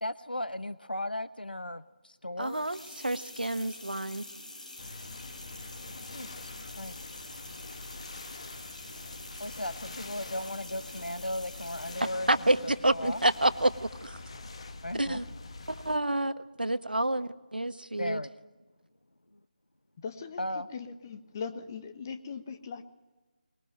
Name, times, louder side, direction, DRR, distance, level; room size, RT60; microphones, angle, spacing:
voice 1, 0.0-2.7 6.1-7.0 9.4-12.3 12.6-13.2 14.8-15.2 18.0-18.3 20.4-20.7, left 1 dB, 80° left, 13 dB, 1.0 m, -36 dB
sound 1, 2.4-12.2, left 2 dB, 55° left, 7.1 m, -46 dB
voice 2, 2.4-4.3 12.0-14.2 15.0-15.3 15.7-18.2, right 1 dB, 75° right, 11 dB, 1.4 m, -29 dB
sound 2, 4.8-16.0, left 3 dB, 40° left, 1.5 m, -45 dB
voice 3, 20.0-22.9, left 5 dB, 20° left, 8 dB, 1.3 m, -40 dB
21.5 x 21.5 x 9.1 m, 1.2 s
figure-of-eight pair, 160°, 5 cm